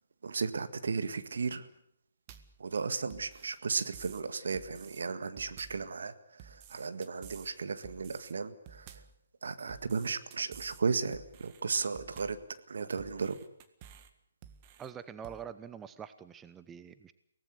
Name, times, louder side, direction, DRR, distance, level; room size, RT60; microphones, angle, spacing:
voice 1, 0.2-1.7 2.6-9.0 9.4-12.4 12.7-13.4, right 5 dB, 65° right, 11 dB, 1.8 m, -35 dB
sound 1, 2.3-2.6 3.1-4.2 4.5-5.0 5.4-5.9 6.4-7.5 7.8-8.3 8.7-9.2 9.7-10.8 11.1-11.6 12.0-12.5 13.0-14.1 14.4-14.9 15.2-15.4, right 9 dB, 30° right, 1.8 m, -52 dB
voice 2, 14.8-17.1, right 8 dB, 15° right, 13 dB, 0.8 m, -45 dB
23.5 x 18.0 x 8.2 m, 0.72 s
figure-of-eight pair, 140°, 0 cm